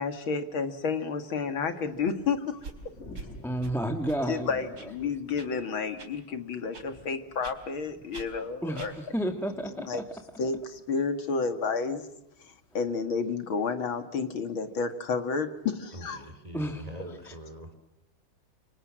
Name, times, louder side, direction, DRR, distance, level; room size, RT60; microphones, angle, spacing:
voice 1, 0.0-2.6 3.2-3.3 4.3-8.9 9.7-10.0 10.4-12.0 12.4-16.2, left 5 dB, 70° left, 2.9 m, -31 dB
sound 1, 1.8-13.1, left 2 dB, 30° left, 3.8 m, -53 dB
sound 2, 2.6-2.8 3.1-3.3 3.6-3.7 4.1-4.2 4.8-4.9 5.4-5.5 6.0-6.1 6.7-6.9 7.4-7.6 8.1-8.3 8.8-8.9, right 4 dB, 60° right, 4.6 m, -43 dB
voice 2, 3.4-4.6 4.8-4.9 8.6-10.0 16.5-16.8 17.3-17.4, right 1 dB, ahead, 2.1 m, -31 dB
voice 3, 15.9-17.7, right 1 dB, 15° right, 4.7 m, -43 dB
29.5 x 25.5 x 7.6 m
omnidirectional pair, 2.3 m